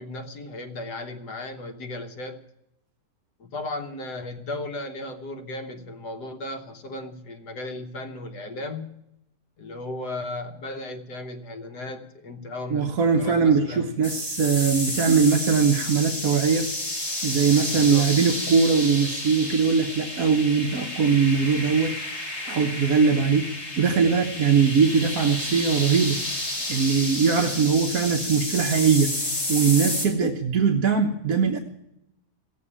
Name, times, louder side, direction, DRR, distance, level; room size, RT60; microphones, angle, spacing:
voice 1, 0.0-2.4 3.4-9.0 9.6-13.9 17.7-18.1, left 2 dB, 75° left, 6 dB, 1.7 m, -36 dB
voice 2, 12.7-16.7 17.2-21.9 22.5-23.5 23.8-26.2 26.7-29.1 29.5-31.6, right 5 dB, 60° right, 2 dB, 1.5 m, -21 dB
sound 1, 14.0-30.1, left 1 dB, 40° left, 4.4 m, -31 dB
16.5 x 8.4 x 9.9 m, 0.86 s
omnidirectional pair, 1.7 m